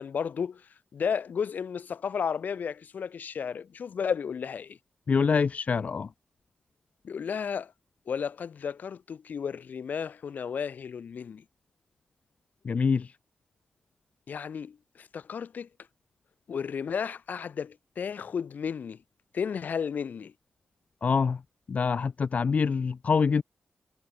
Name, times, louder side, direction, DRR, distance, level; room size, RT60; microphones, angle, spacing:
voice 1, 0.0-4.8 7.0-7.7 8.1-11.4 14.3-15.7 16.5-19.0 19.3-20.3, left 7 dB, 70° left, 1.9 m, -33 dB
voice 2, 5.1-6.1 12.6-13.1 21.0-21.4 21.7-23.4, left 5 dB, 50° left, 1.5 m, -25 dB
wide cardioid pair, 125°, 3 cm